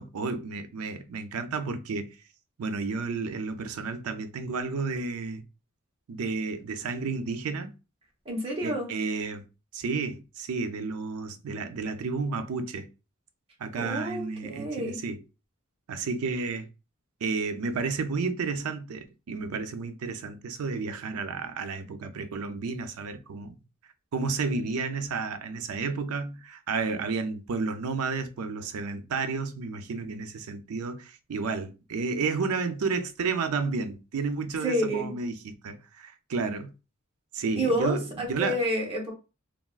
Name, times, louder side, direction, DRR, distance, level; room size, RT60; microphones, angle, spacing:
voice 1, 0.0-2.2 2.6-5.4 6.1-7.7 8.6-9.4 9.7-12.9 13.6-15.2 15.9-16.7 17.2-23.5 24.1-36.7 37.3-38.6, right 4 dB, 85° right, 0.4 m, -31 dB
voice 2, 8.3-8.9 13.7-15.0 34.6-35.1 37.6-39.1, equal, 25° right, 0.9 m, -29 dB
3.3 x 2.3 x 2.3 m
head